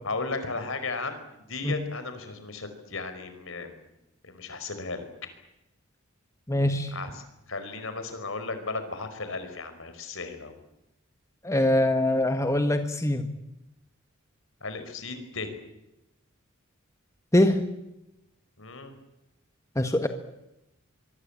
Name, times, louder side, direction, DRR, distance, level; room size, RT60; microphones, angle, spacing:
voice 1, 0.0-3.8 4.2-5.1 6.9-10.5 14.6-15.6 18.6-18.9, left 3 dB, 70° left, 9 dB, 4.9 m, -35 dB
voice 2, 6.5-6.9 11.4-13.3 17.3-17.7 19.7-20.1, left 1 dB, 15° left, 8 dB, 1.6 m, -23 dB
25.0 x 22.5 x 8.8 m, 0.90 s
head